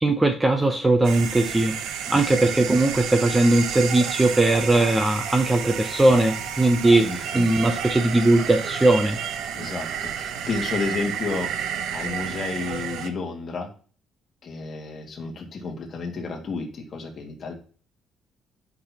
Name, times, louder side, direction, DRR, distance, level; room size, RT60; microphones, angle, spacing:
voice 1, 0.0-1.8 2.1-9.2, right 2 dB, 10° right, 6 dB, 0.6 m, -19 dB
sound 1, 1.0-13.1, right 8 dB, 75° right, 0.8 m, -31 dB
voice 2, 7.0-7.4 9.6-11.5 11.9-13.7 14.4-17.5, left 4 dB, 30° left, 1 dB, 2.1 m, -31 dB
11.5 x 6.1 x 2.9 m, 0.39 s
cardioid pair, 180°, 0 cm